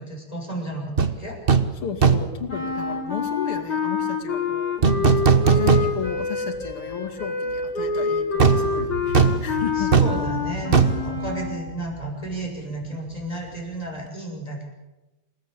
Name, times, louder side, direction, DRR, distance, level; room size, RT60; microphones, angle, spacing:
voice 1, 0.0-1.4 9.8-14.6, right 1 dB, 15° left, 0 dB, 6.7 m, -33 dB
sound 1, 1.0-1.1 1.5-1.7 2.0-2.4 4.8-6.3 6.6-6.7 8.4-12.1 12.3-12.5, right 6 dB, 30° right, 1.1 m, -20 dB
voice 2, 1.8-9.9, left 7 dB, 90° left, 3 dB, 3.4 m, -34 dB
Clarinet - C natural minor, 2.5-11.6, left 5 dB, 55° left, 7.4 m, -27 dB
28.0 x 17.0 x 8.4 m, 1.0 s
omnidirectional pair, 2.3 m